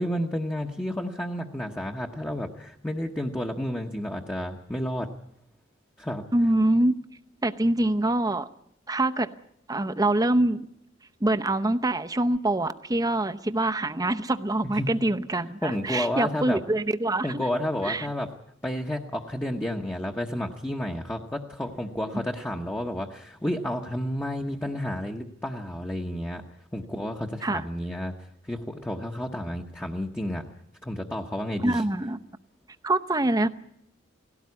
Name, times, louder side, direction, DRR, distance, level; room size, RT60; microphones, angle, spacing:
voice 1, 0.0-5.1 6.0-6.2 14.6-14.9 15.6-16.6 17.2-18.3 18.6-26.4 26.7-28.2 28.4-30.5 30.8-31.8, left 1 dB, 10° left, 1 dB, 1.0 m, -31 dB
voice 2, 6.3-6.9 7.4-8.5 8.9-9.3 9.7-10.7 11.2-17.4 17.8-18.1 27.4-27.6 31.6-32.2 32.8-33.5, right 1 dB, 20° right, 10 dB, 0.7 m, -25 dB
18.0 x 17.0 x 9.6 m, 0.74 s
head